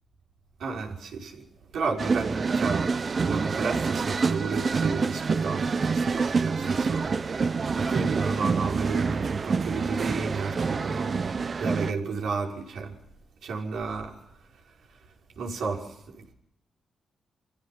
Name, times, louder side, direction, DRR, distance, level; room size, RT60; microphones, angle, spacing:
voice 1, 0.6-13.0 13.4-16.3, right 4 dB, 85° right, -1 dB, 5.6 m, -33 dB
sound 1, 2.0-11.9, right 4 dB, 45° right, 0.8 m, -27 dB
28.0 x 15.5 x 6.0 m, 0.77 s
cardioid pair, 85°, 0 cm